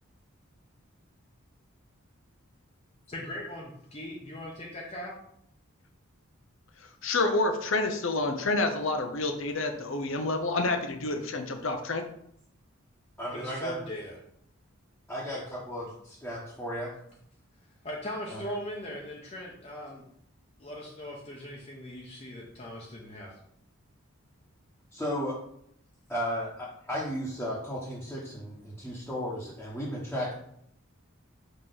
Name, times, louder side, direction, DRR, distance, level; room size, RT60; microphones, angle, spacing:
voice 1, 3.1-5.2 13.3-14.1 17.8-20.0 20.6-23.4, equal, 30° left, -3 dB, 0.8 m, -39 dB
voice 2, 7.0-12.0, left 2 dB, 65° left, 5 dB, 0.8 m, -28 dB
voice 3, 13.2-13.7 15.1-16.9 18.3-18.4 24.9-25.4 26.1-30.3, equal, 5° left, -8 dB, 1.1 m, -34 dB
5.4 x 3.1 x 5.5 m, 0.70 s
head